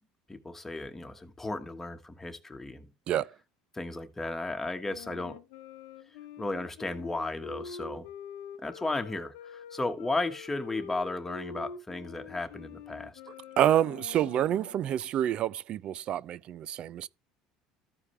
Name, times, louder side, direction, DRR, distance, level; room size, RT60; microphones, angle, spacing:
voice 1, 0.3-2.9 3.7-5.4 6.4-8.1 8.6-13.1, left 2 dB, 15° left, 1.3 m, -34 dB
Wind instrument woodwind instrument, 4.8-14.9, left 6 dB, 85° left, 1.0 m, -45 dB
voice 2, 13.6-17.1, right 11 dB, 50° right, 0.3 m, -27 dB
14.0 x 4.8 x 3.2 m
supercardioid pair, 95°, 2 cm